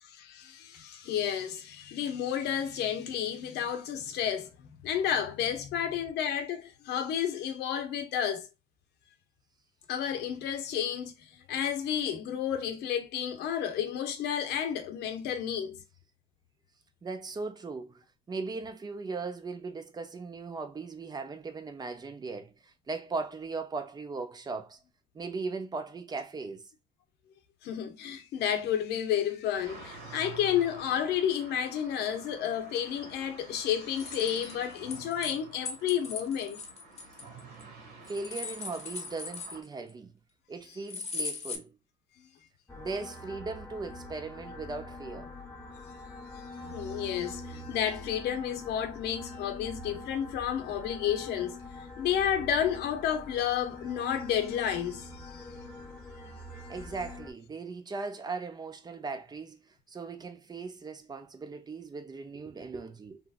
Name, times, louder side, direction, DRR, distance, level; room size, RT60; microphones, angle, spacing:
voice 1, 0.0-8.5 9.9-15.8 27.6-36.6 46.4-51.6 52.0-55.5 56.5-56.7, left 9 dB, 75° left, 0.7 m, -31 dB
voice 2, 17.0-24.8 25.1-26.7 38.1-40.1 40.5-41.8 42.8-45.3 56.7-63.2, right 4 dB, 25° right, 0.5 m, -38 dB
sound 1, 29.6-39.6, right 4 dB, 80° right, 1.4 m, -49 dB
sound 2, 34.0-35.4 35.6-37.6 38.0-39.9 40.9-41.6, left 4 dB, 40° left, 0.8 m, -39 dB
sound 3, 42.7-57.3, left 2 dB, 5° left, 0.9 m, -44 dB
2.9 x 2.7 x 2.4 m
cardioid pair, 110°, 17 cm